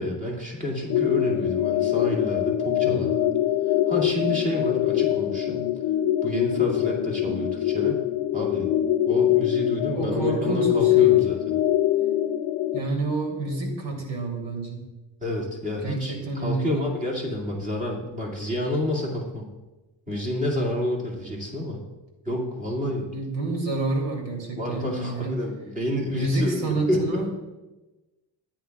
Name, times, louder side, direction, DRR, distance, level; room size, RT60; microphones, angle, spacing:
voice 1, 0.0-3.3 3.9-5.7 6.2-8.0 8.3-8.7 9.1-11.5 15.2-19.5 20.1-21.8 22.3-23.1 24.6-27.2, left 1 dB, 20° right, -2 dB, 2.2 m, -29 dB
sound 1, 0.9-12.8, left 13 dB, 80° left, 0.6 m, -23 dB
voice 2, 2.8-3.3 9.9-11.2 12.7-14.8 15.8-16.8 23.1-25.4 26.1-27.3, right 2 dB, 70° right, 0 dB, 3.0 m, -28 dB
13.5 x 9.6 x 2.4 m, 1.1 s
cardioid pair, 135°, 44 cm